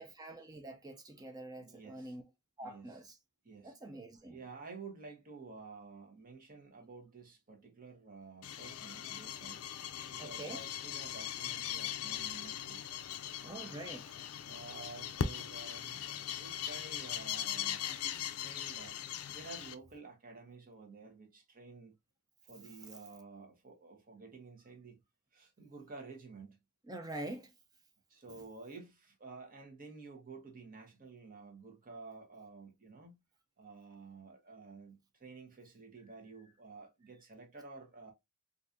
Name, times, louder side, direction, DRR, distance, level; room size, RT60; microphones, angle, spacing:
voice 1, 0.0-2.2 2.6-3.2 3.6-4.4 10.2-10.6 13.4-14.1 26.9-27.5, right 2 dB, 20° right, 0.5 m, -45 dB
voice 2, 1.5-2.2 2.6-3.0 3.4-3.8 4.1-9.6 10.1-13.0 14.4-21.9 22.4-25.0 25.3-26.6 28.1-33.2 33.6-38.1, right 4 dB, 40° right, 1.1 m, -52 dB
sound 1, 8.4-19.7, left 9 dB, 80° left, 0.4 m, -40 dB
3.9 x 2.6 x 2.6 m
head